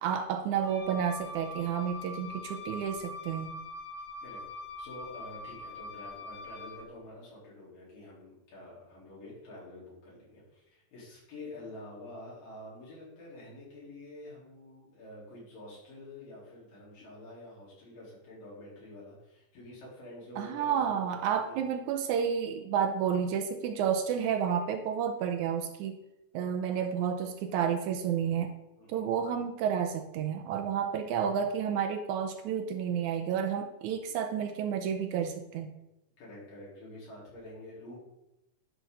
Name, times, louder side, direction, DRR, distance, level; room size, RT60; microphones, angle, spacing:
voice 1, 0.0-3.6 20.4-26.0 26.3-28.5 28.9-35.7, right 8 dB, 80° right, 7 dB, 1.9 m, -31 dB
Wind instrument woodwind instrument, 0.6-6.9, left 2 dB, 40° left, 3.6 m, -43 dB
voice 2, 4.2-21.6 28.8-29.0 36.2-38.0, left 1 dB, 80° left, -7 dB, 5.4 m, -48 dB
11.0 x 6.3 x 3.9 m, 0.91 s
omnidirectional pair, 3.8 m